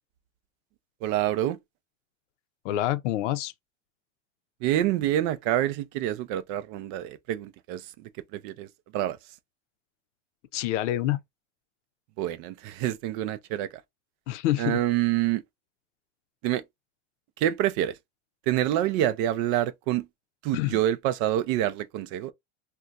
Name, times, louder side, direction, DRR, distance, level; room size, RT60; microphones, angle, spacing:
voice 1, 1.0-1.6 4.6-8.7 8.9-9.2 12.2-13.7 14.6-15.4 16.4-16.6 17.4-18.0 18.5-20.1 20.4-22.3, right 12 dB, 50° right, 0.4 m, -27 dB
voice 2, 2.6-3.5 10.5-11.2 14.3-14.8 20.5-20.8, left 14 dB, 75° left, 0.6 m, -27 dB
2.4 x 2.3 x 3.8 m
supercardioid pair, 140°, 36 cm